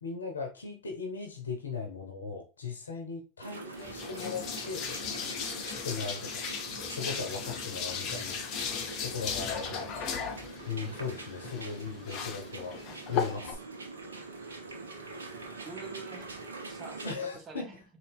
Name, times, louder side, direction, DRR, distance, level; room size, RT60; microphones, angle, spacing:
voice 1, 0.0-4.8 5.7-6.4 6.9-8.4 9.0-9.9 10.6-12.7 13.1-13.6 17.0-17.7, left 5 dB, 85° left, 3 dB, 0.7 m, -38 dB
sound 1, 3.4-17.1, right 3 dB, 80° right, 0.8 m, -44 dB
sound 2, 3.8-13.5, left 6 dB, 45° left, 0.8 m, -37 dB
voice 2, 15.6-16.3 16.7-17.8, right 4 dB, 30° right, 4 dB, 1.0 m, -46 dB
4.0 x 2.5 x 3.5 m, 0.32 s
figure-of-eight pair, 85°, 0 cm